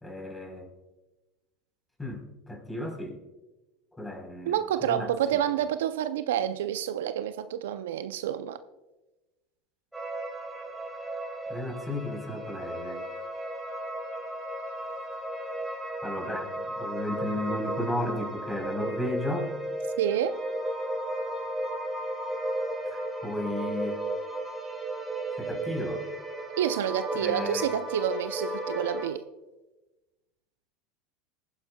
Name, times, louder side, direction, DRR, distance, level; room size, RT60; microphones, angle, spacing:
voice 1, 0.0-0.7 2.0-3.2 4.0-4.5 4.8-5.1 11.5-13.0 16.0-19.5 22.9-24.0 25.4-26.0 27.2-27.6, left 1 dB, 10° left, 4.0 m, -34 dB
voice 2, 4.5-8.6 20.0-20.4 26.6-29.2, right 10 dB, 75° right, 0.5 m, -28 dB
sound 1, 9.9-29.1, right 1 dB, 5° right, 4.2 m, -34 dB
21.5 x 9.9 x 2.3 m
hypercardioid pair, 85°, 0 cm